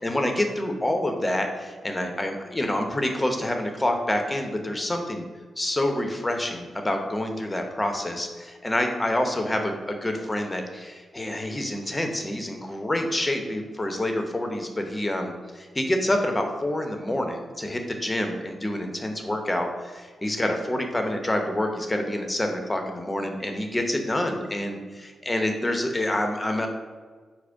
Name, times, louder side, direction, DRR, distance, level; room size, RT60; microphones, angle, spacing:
voice 1, 0.0-5.2 5.6-26.7, left 1 dB, 25° left, 4 dB, 0.8 m, -27 dB
4.8 x 2.1 x 4.7 m, 1.5 s
supercardioid pair, 40°, 0 cm